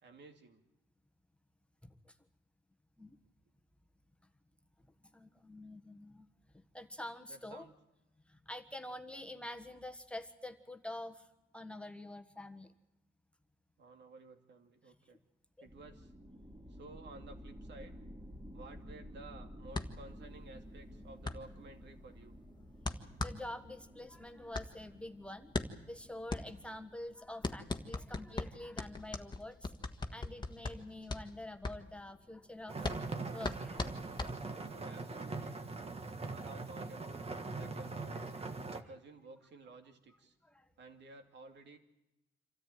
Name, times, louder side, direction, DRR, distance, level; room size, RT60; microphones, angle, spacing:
voice 1, 0.0-0.6 7.3-7.7 13.8-15.2 15.6-16.1 16.7-17.9 18.5-22.4 34.7-35.7 36.3-37.3 37.5-38.1 38.7-40.3 40.8-41.8, right 3 dB, 60° right, 6 dB, 2.6 m, -54 dB
voice 2, 1.8-2.2 3.0-3.2 5.0-6.2 6.5-7.7 8.3-11.3 11.5-12.7 23.2-25.5 25.9-29.7 30.1-33.8 37.7-38.7 40.4-40.7, left 1 dB, 5° left, 6 dB, 1.4 m, -47 dB
sound 1, 15.6-27.9, equal, 15° right, 3.3 m, -53 dB
sound 2, 19.7-34.8, left 3 dB, 20° left, 1.5 m, -41 dB
sound 3, 32.7-38.8, right 3 dB, 30° right, 1.7 m, -42 dB
26.5 x 13.5 x 9.3 m, 0.93 s
cardioid pair, 90°, 20 cm